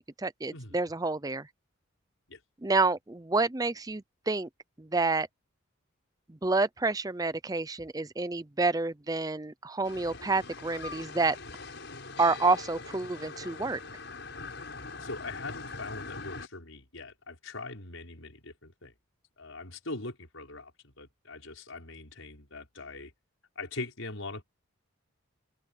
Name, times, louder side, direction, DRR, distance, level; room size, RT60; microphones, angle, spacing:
voice 1, 0.2-1.5 2.6-4.5 4.8-5.3 6.3-11.4 12.2-13.8, right 3 dB, 15° right, 0.5 m, -28 dB
sound 1, 9.8-16.5, left 3 dB, 55° left, 7.1 m, -42 dB
voice 2, 15.0-18.9 19.4-23.1 23.6-24.4, left 2 dB, 80° left, 5.5 m, -41 dB
head